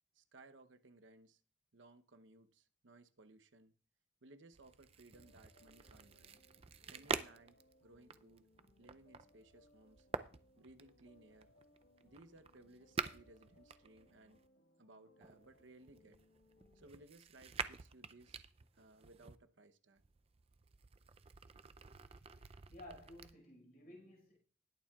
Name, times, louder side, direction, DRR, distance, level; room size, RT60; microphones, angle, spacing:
voice 1, 0.1-1.4 1.7-3.7 4.2-6.3 6.9-8.5 8.8-10.1 10.6-11.5 12.0-14.4 14.8-16.2 16.7-18.4 18.8-20.0, right 2 dB, 80° right, 0.8 m, -62 dB
sound 1, 4.5-14.5 15.2-19.4 20.0-23.3, right 5 dB, 30° right, 0.4 m, -48 dB
sound 2, 5.1-17.0, left 2 dB, 80° left, 1.4 m, -70 dB
voice 2, 22.1-24.4, left 1 dB, 50° left, 4.7 m, -56 dB
20.0 x 7.3 x 2.4 m
head